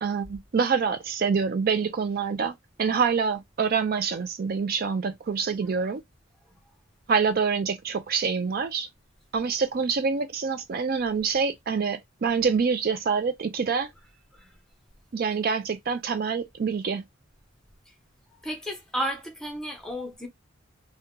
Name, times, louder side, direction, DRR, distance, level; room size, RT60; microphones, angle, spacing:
voice 1, 0.0-6.0 7.1-8.9 9.3-13.9 15.1-17.0, right 5 dB, 50° right, 0.4 m, -26 dB
voice 2, 18.3-20.3, equal, 5° left, 0.8 m, -33 dB
2.8 x 2.2 x 3.6 m
head